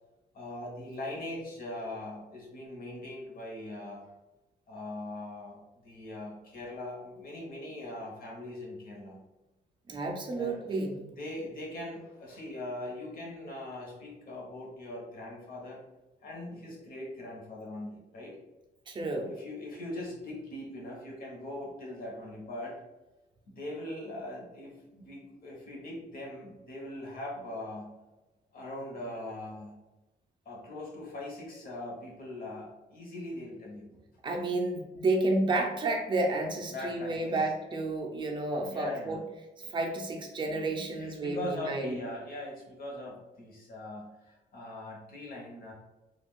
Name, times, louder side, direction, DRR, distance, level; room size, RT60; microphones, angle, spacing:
voice 1, 0.3-4.1 4.7-9.2 10.3-15.8 16.2-18.4 19.2-22.8 23.5-28.0 28.5-29.8 30.4-34.0 36.7-37.3 38.7-39.2 39.6-39.8 40.4-45.7, left 1 dB, 55° left, -2 dB, 0.9 m, -41 dB
voice 2, 9.9-11.0 18.9-19.3 34.2-39.2 39.7-42.0, right 2 dB, 25° right, 1 dB, 0.4 m, -31 dB
2.4 x 2.3 x 3.5 m, 1.0 s
wide cardioid pair, 165°, 18 cm